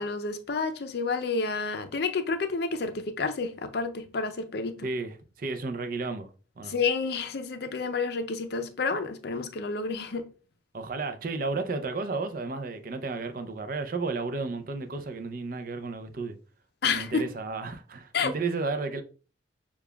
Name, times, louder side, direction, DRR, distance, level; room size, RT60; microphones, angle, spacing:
voice 1, 0.0-4.9 6.7-10.2 16.8-17.3 18.1-18.3, left 4 dB, 55° left, 0.5 m, -30 dB
voice 2, 4.8-6.3 6.6-6.8 10.7-16.4 16.8-19.0, right 3 dB, 45° right, 0.5 m, -33 dB
6.7 x 2.3 x 2.2 m
head